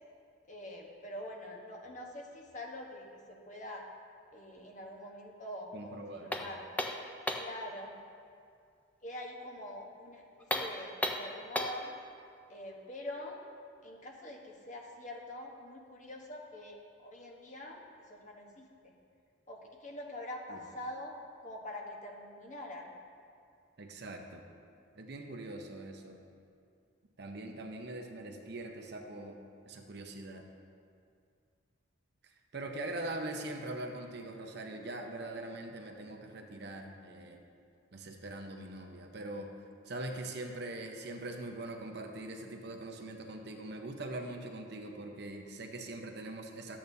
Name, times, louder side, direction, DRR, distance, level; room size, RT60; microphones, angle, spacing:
voice 1, 0.5-3.9 4.3-6.7 7.4-8.0 9.0-12.0 12.5-13.4 13.8-16.8 17.0-17.8 18.1-18.9 19.5-21.2 21.4-22.9, left 1 dB, 40° left, 0 dB, 1.0 m, -45 dB
voice 2, 5.7-6.4 20.5-20.6 23.8-24.5 24.9-26.2 27.2-29.3 29.7-30.5 32.5-37.4 37.9-39.5 39.9-46.8, right 2 dB, 55° right, 3 dB, 0.7 m, -42 dB
sound 1, 6.3-7.6 10.4-11.9, left 1 dB, 10° left, 0.4 m, -35 dB
12.5 x 8.6 x 2.7 m, 2.3 s
head